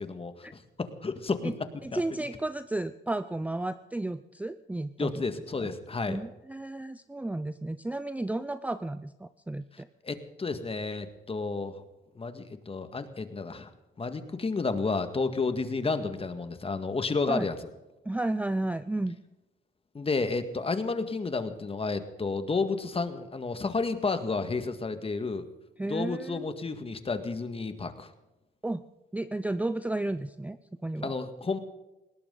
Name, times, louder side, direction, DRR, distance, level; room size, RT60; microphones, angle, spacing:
voice 1, 0.0-2.3 5.0-6.2 9.7-11.8 12.2-13.7 14.0-17.5 19.9-25.5 25.9-28.1 31.0-31.6, left 4 dB, 30° left, 9 dB, 1.8 m, -31 dB
voice 2, 1.8-5.2 5.6-5.7 6.1-9.9 17.3-17.5 18.1-19.2 25.8-26.5 28.6-28.8 29.1-30.6 30.8-31.1, right 2 dB, 5° right, 13 dB, 0.5 m, -33 dB
20.5 x 18.0 x 4.0 m, 1.0 s
cardioid pair, 90°, 20 cm